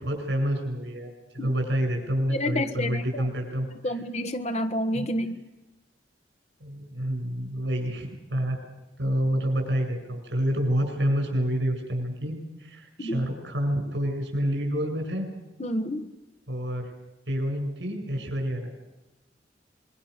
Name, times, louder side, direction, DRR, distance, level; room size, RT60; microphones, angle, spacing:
voice 1, 0.0-4.0 4.9-5.1 6.6-8.6 9.0-15.3 16.5-16.9 17.3-18.7, equal, 90° right, 4 dB, 7.4 m, -28 dB
voice 2, 2.3-3.3 3.8-5.4 13.0-13.2 15.6-16.1, left 1 dB, 40° left, 8 dB, 1.5 m, -29 dB
25.5 x 23.0 x 6.8 m, 1.0 s
head